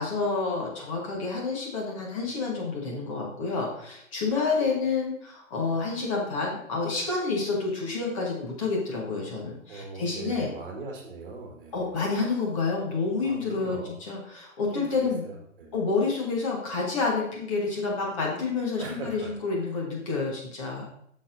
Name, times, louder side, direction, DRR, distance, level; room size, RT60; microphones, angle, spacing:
voice 1, 0.0-10.5 11.7-15.2 15.7-20.9, left 4 dB, 25° left, -2 dB, 1.3 m, -29 dB
voice 2, 9.7-11.8 13.2-13.9 14.7-14.9 15.2-15.7 18.8-19.3, right 3 dB, 40° right, 1 dB, 1.7 m, -40 dB
8.2 x 6.5 x 2.6 m, 0.69 s
figure-of-eight pair, 140°, 40 cm